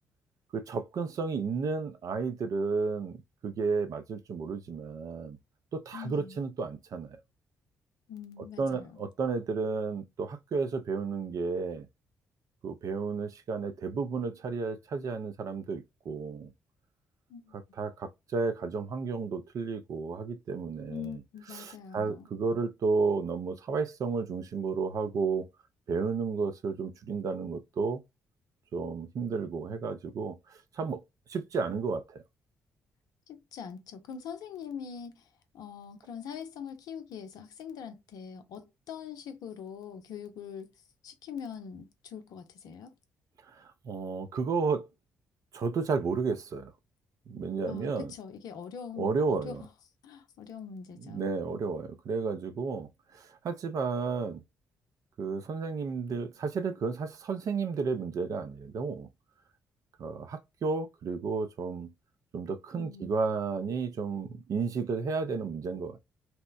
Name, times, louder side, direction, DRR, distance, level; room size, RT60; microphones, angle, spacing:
voice 1, 0.5-5.4 5.7-7.2 8.6-11.9 12.6-16.5 17.5-21.2 21.5-25.5 25.9-28.0 28.7-31.0 31.3-32.2 43.5-44.9 45.5-46.7 47.3-48.1 49.0-49.6 51.0-54.4 55.2-59.1 60.0-61.9 62.3-66.0, right 4 dB, 50° right, 0.5 m, -32 dB
voice 2, 5.9-6.4 8.1-9.1 17.3-17.5 20.9-22.3 33.3-35.3 35.5-40.7 41.0-42.9 47.7-49.7 50.0-51.3 62.8-63.1, left 7 dB, 60° left, 0.5 m, -43 dB
2.9 x 2.0 x 2.3 m
hypercardioid pair, 40°, 7 cm